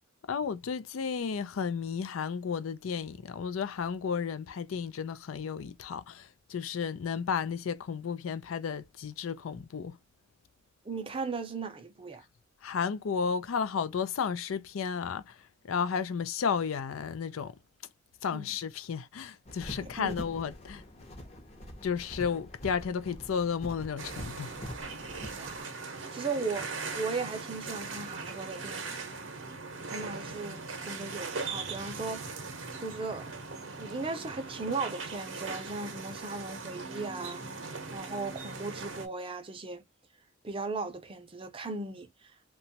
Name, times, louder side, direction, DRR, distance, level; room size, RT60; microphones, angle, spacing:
voice 1, 0.3-10.0 12.6-17.6 18.2-20.8 21.8-24.6, left 6 dB, 80° left, 0.4 m, -33 dB
voice 2, 10.8-12.2 18.3-18.5 19.8-20.1 25.4-25.7 26.1-26.7 27.0-29.1 29.9-32.2 32.8-33.3 33.7-37.4 37.9-39.8 40.4-42.3, right 4 dB, 25° right, 0.5 m, -37 dB
sound 1, 19.4-25.6, equal, 30° left, 0.7 m, -45 dB
sound 2, 24.0-39.1, right 4 dB, 60° right, 0.7 m, -40 dB
2.9 x 2.3 x 2.7 m
head